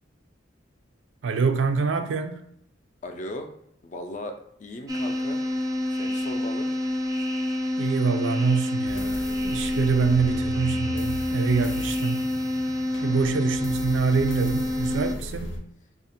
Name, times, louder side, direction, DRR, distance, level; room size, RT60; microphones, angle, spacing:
voice 1, 1.2-2.4 7.8-12.3 13.0-15.6, right 5 dB, 75° right, 0.4 m, -25 dB
voice 2, 3.0-3.5 3.8-5.4 5.9-6.7 13.1-13.4, left 1 dB, 40° left, 0.4 m, -37 dB
sound 1, 4.9-15.1, left 1 dB, 20° right, 0.5 m, -28 dB
sound 2, 8.9-15.6, left 1 dB, 75° left, 0.7 m, -37 dB
2.8 x 2.4 x 4.2 m
head